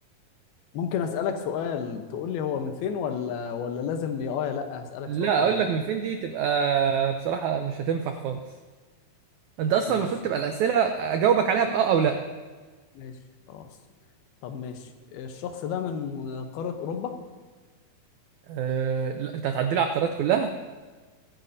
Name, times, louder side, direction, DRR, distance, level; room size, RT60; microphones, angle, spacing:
voice 1, 0.7-5.6 9.9-10.0 13.0-13.1 13.5-13.7 14.4-14.8 15.1-17.1, left 7 dB, 90° left, 6 dB, 2.9 m, -31 dB
voice 2, 5.1-8.4 9.6-12.2 18.5-20.5, right 7 dB, 90° right, 6 dB, 1.6 m, -24 dB
23.0 x 10.0 x 2.7 m, 1.4 s
omnidirectional pair, 4.2 m